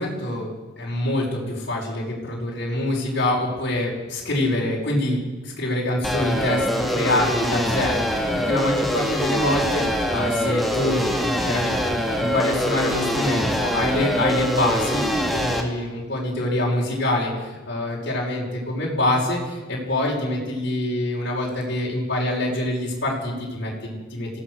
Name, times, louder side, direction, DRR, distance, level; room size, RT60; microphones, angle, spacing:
voice 1, 0.0-15.1 15.3-24.4, left 1 dB, 55° left, -3 dB, 5.7 m, -25 dB
sound 1, 6.0-15.6, equal, ahead, 2.2 m, -24 dB
26.5 x 17.0 x 6.5 m, 1.2 s
head